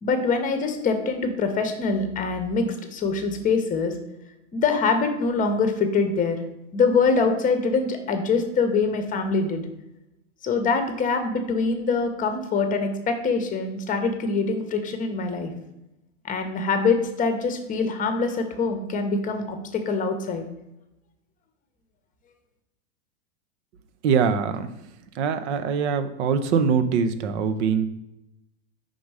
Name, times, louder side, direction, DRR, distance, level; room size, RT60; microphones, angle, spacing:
voice 1, 0.0-4.0 4.5-6.4 6.7-9.7 10.4-15.5 16.2-20.4, left 4 dB, 20° left, 6 dB, 0.8 m, -24 dB
voice 2, 24.0-24.7 25.2-27.9, right 6 dB, 65° right, 10 dB, 0.7 m, -23 dB
5.2 x 3.9 x 4.7 m, 0.89 s
hypercardioid pair, 120°, 36 cm